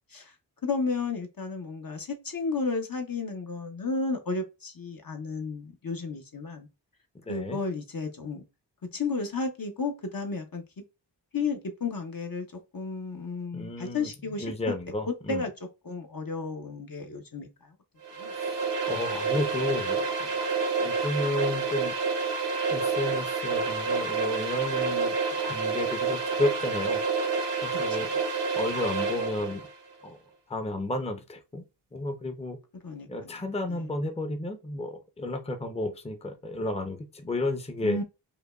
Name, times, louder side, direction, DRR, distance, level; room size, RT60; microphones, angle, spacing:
voice 1, 0.6-6.7 7.3-8.4 8.9-10.6 11.3-12.5 12.7-14.7 15.3-15.5 15.8-17.5 18.2-18.3 28.0-28.1 32.8-33.3 33.7-33.8 37.8-38.0, left 4 dB, 50° left, 0.8 m, -32 dB
voice 2, 7.3-7.6 13.5-14.1 14.4-15.4 18.3-20.3 20.8-22.0 22.7-27.0 27.6-28.1 28.6-29.7 30.0-30.2 30.5-31.6 31.9-32.6 33.1-38.0, left 2 dB, 15° left, 0.6 m, -32 dB
sound 1, 18.0-29.7, right 4 dB, 70° right, 0.8 m, -29 dB
5.0 x 2.2 x 2.3 m
wide cardioid pair, 45°, 43 cm